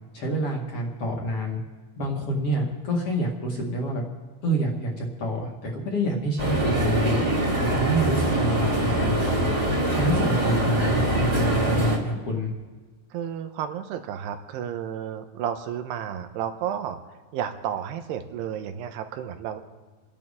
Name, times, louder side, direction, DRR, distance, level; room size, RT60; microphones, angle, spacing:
voice 1, 0.1-1.6 2.0-4.0 4.4-7.2 7.6-9.5 9.9-12.5, right 1 dB, 45° left, -1 dB, 2.2 m, -27 dB
sound 1, 6.4-12.0, right 1 dB, 15° right, 1.8 m, -24 dB
voice 2, 13.1-17.0 17.3-19.6, right 9 dB, 80° right, 7 dB, 3.0 m, -32 dB
29.5 x 10.5 x 3.7 m, 1.4 s
omnidirectional pair, 4.8 m